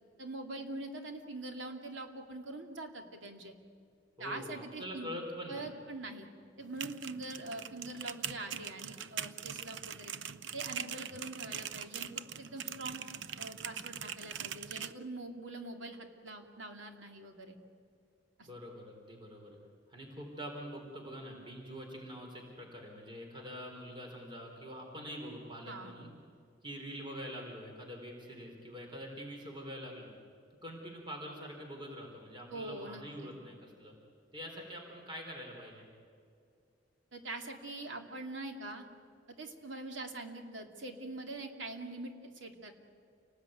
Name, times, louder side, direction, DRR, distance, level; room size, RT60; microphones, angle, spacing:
voice 1, 0.2-3.5 4.2-5.1 5.5-6.3 6.6-10.1 10.5-12.1 12.4-13.0 13.4-17.6 18.4-18.5 25.6-26.0 32.5-33.3 37.1-38.8 39.4-42.7, right 2 dB, 90° right, 4 dB, 2.8 m, -43 dB
voice 2, 4.2-5.7 18.5-19.6 19.9-26.1 26.6-30.1 30.6-33.9 34.3-35.9, equal, 25° right, 1 dB, 4.3 m, -45 dB
sound 1, 6.6-14.9, right 8 dB, 75° right, 0.7 m, -42 dB
29.0 x 19.0 x 9.3 m, 2.4 s
head